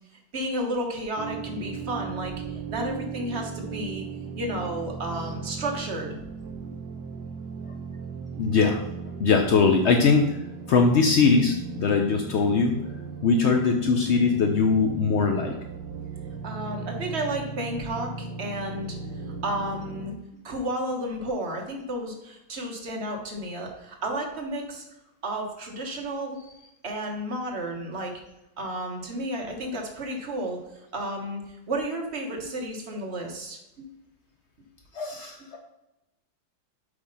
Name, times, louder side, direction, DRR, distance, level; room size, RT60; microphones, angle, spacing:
voice 1, 0.3-4.0 4.4-6.2 6.6-6.7 8.3-8.4 15.9-16.0 16.3-20.1 20.4-24.9 25.2-26.4 26.8-28.2 28.6-30.6 30.9-33.8 35.2-35.3, right 1 dB, 40° right, 1 dB, 1.3 m, -32 dB
sound 1, 1.2-20.1, right 5 dB, 75° right, 1.3 m, -37 dB
voice 2, 8.4-8.8 9.2-10.4 10.7-12.8 13.2-15.6 34.9-35.6, left 4 dB, 70° left, 3 dB, 0.6 m, -21 dB
7.8 x 3.5 x 5.5 m, 0.91 s
omnidirectional pair, 1.9 m